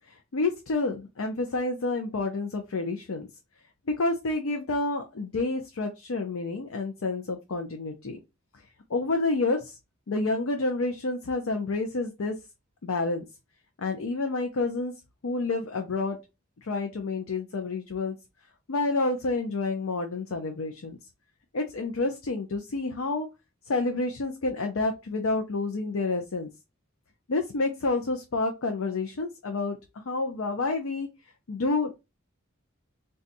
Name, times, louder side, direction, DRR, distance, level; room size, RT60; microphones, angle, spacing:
voice 1, 0.1-3.3 3.9-8.2 8.9-9.8 10.1-12.4 12.8-13.3 13.8-14.9 15.2-16.2 16.6-18.2 18.7-21.0 21.5-23.3 23.7-26.5 27.3-31.1 31.5-31.9, left 3 dB, 85° left, 4 dB, 0.5 m, -29 dB
4.0 x 2.3 x 2.5 m, 0.24 s
head